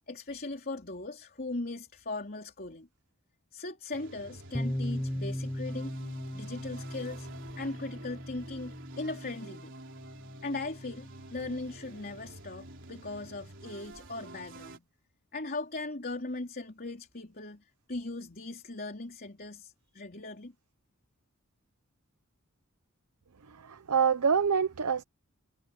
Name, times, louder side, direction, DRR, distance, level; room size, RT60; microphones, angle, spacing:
voice 1, 0.1-2.9 3.5-5.9 6.3-7.3 7.6-9.7 10.4-14.8 15.3-20.5, left 2 dB, 45° left, 3.5 m, -39 dB
sound 1, 3.9-14.8, right 2 dB, 55° right, 3.9 m, -49 dB
sound 2, 4.5-12.2, left 1 dB, 5° left, 0.4 m, -39 dB
voice 2, 23.6-25.0, right 6 dB, 85° right, 0.8 m, -26 dB
head